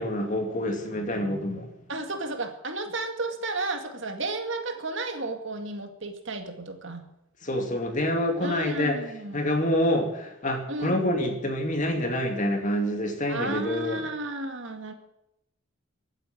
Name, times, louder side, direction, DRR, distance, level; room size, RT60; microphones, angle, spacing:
voice 1, 0.0-1.7 7.4-9.0 9.3-14.0, left 1 dB, 35° left, 4 dB, 2.5 m, -27 dB
voice 2, 1.9-7.0 8.4-9.4 10.7-11.0 13.3-14.9, right 2 dB, 55° right, 6 dB, 2.1 m, -33 dB
15.0 x 9.2 x 9.0 m, 0.85 s
head